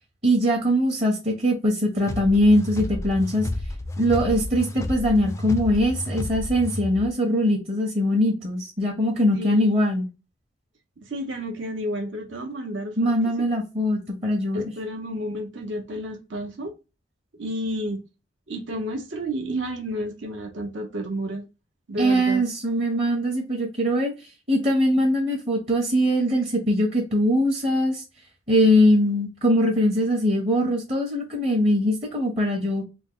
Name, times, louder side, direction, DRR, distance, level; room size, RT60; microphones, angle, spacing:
voice 1, 0.2-3.5 4.0-10.1 13.0-14.6 22.0-24.1 24.5-28.0 28.5-32.8, equal, 30° right, 0.8 m, -22 dB
sound 1, 2.0-7.1, left 1 dB, 15° left, 0.3 m, -31 dB
voice 2, 9.4-9.7 11.0-13.1 14.5-16.7 17.4-18.0 18.5-21.4 21.9-22.4, equal, 75° right, 0.9 m, -31 dB
3.5 x 2.1 x 3.6 m
head